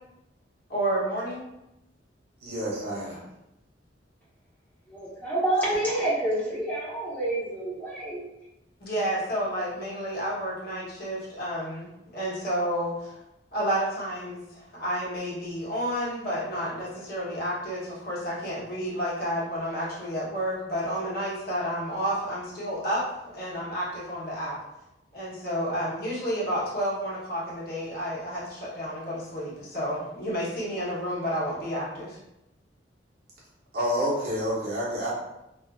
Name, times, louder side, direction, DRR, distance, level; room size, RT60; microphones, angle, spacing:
voice 1, 0.7-1.4 8.8-13.1 13.5-23.0 23.3-24.6 25.1-32.2, equal, 55° left, -7 dB, 0.9 m, -30 dB
voice 2, 2.4-3.2 33.7-35.1, equal, 55° right, -6 dB, 0.8 m, -28 dB
voice 3, 4.9-8.3, right 1 dB, 10° left, -8 dB, 0.9 m, -28 dB
2.4 x 2.4 x 2.3 m, 0.90 s
head